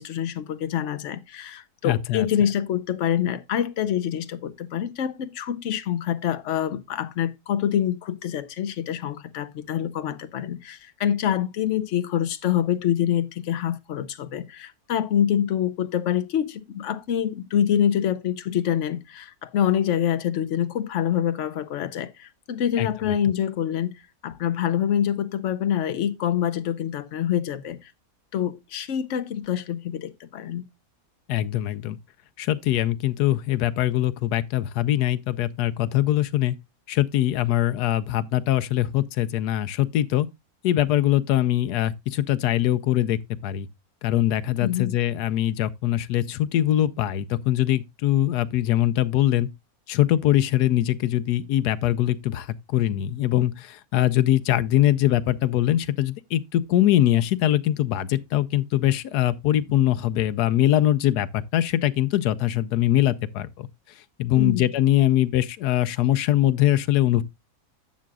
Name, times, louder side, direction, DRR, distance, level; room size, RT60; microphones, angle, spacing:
voice 1, 0.0-23.9 24.2-27.9 28.3-30.7 44.6-44.9 64.4-64.7, left 9 dB, 55° left, 1.0 m, -26 dB
voice 2, 1.8-2.3 22.8-23.1 31.3-32.0 32.4-36.6 36.9-40.3 40.6-43.7 44.0-49.5 49.9-63.7 64.2-67.2, left 13 dB, 90° left, 1.2 m, -22 dB
11.5 x 7.5 x 2.3 m
omnidirectional pair, 1.6 m